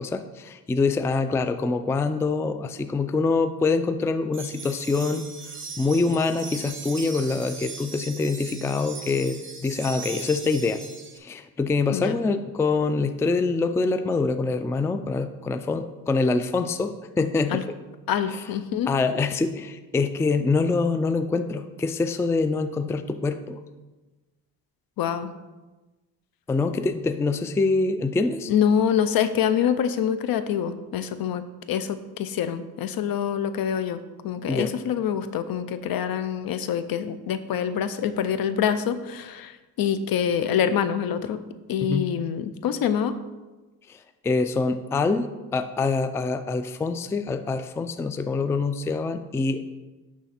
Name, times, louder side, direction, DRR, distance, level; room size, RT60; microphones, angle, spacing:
voice 1, 0.0-5.2 5.8-10.8 11.2-17.7 18.3-18.4 18.9-23.6 26.5-28.5 34.5-34.7 41.8-42.1 44.2-49.6, left 3 dB, 10° left, 9 dB, 0.3 m, -25 dB
sound 1, 4.3-11.2, right 4 dB, 30° right, 1.1 m, -39 dB
voice 2, 18.1-18.9 25.0-25.3 28.5-31.4 31.7-39.5 39.8-41.4 41.7-43.1, left 8 dB, 60° left, 12 dB, 0.6 m, -25 dB
11.0 x 3.7 x 4.3 m, 1.2 s
cardioid pair, 85°, 39 cm